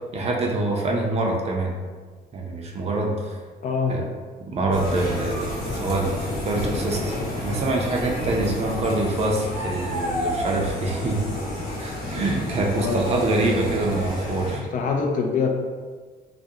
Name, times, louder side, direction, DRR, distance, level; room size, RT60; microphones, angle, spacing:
voice 1, 0.1-1.7 2.3-3.4 3.9-4.1 4.5-6.1 6.4-7.2 7.4-11.2 11.8-14.7, right 2 dB, 40° right, 0 dB, 0.4 m, -25 dB
voice 2, 3.6-4.0 12.8-13.1 14.7-15.5, left 5 dB, 50° left, 2 dB, 0.4 m, -24 dB
sound 1, 4.7-14.6, left 1 dB, 65° left, 0.9 m, -30 dB
2.4 x 2.1 x 2.6 m, 1.5 s
cardioid pair, 110°, 17 cm